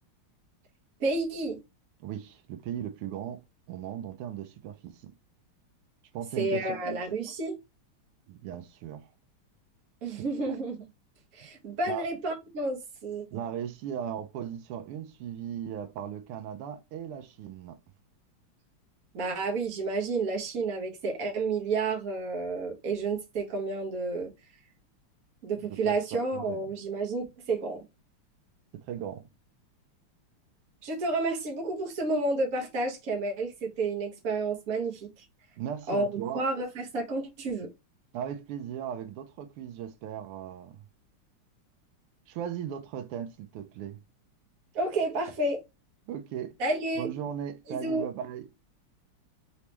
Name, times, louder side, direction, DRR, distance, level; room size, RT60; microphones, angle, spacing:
voice 1, 1.0-1.6 6.4-7.6 10.0-10.8 11.3-13.4 19.1-24.3 25.4-27.8 30.8-35.2 35.9-37.7 44.7-45.6 46.6-47.1 47.7-48.0, right 3 dB, 45° right, 1.4 m, -30 dB
voice 2, 2.0-3.4 3.7-5.1 6.1-7.2 8.3-9.1 10.1-10.6 11.9-12.1 13.3-17.8 25.7-26.6 28.7-29.3 35.6-36.4 38.1-40.8 42.3-44.0 46.1-46.5 47.0-48.5, right 9 dB, 85° right, 1.5 m, -37 dB
4.0 x 3.0 x 3.3 m
omnidirectional pair, 2.4 m